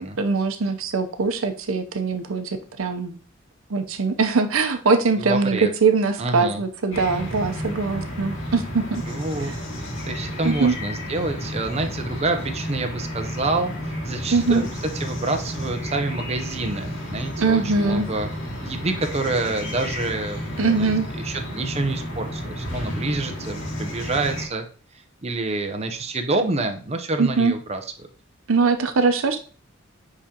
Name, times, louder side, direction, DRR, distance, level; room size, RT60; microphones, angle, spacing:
voice 1, 0.2-3.2 3.7-9.0 10.4-10.7 14.3-14.6 17.4-18.1 20.6-21.1 27.2-27.5 28.5-29.4, right 4 dB, 85° right, 7 dB, 0.7 m, -22 dB
voice 2, 5.2-5.7 6.2-6.6 9.1-9.5 9.8-14.7 14.9-18.3 18.6-24.7 25.2-27.8, right 2 dB, 30° right, 5 dB, 0.7 m, -27 dB
sound 1, 6.9-24.5, equal, 65° left, 2.0 m, -32 dB
9.8 x 3.7 x 2.9 m, 0.39 s
head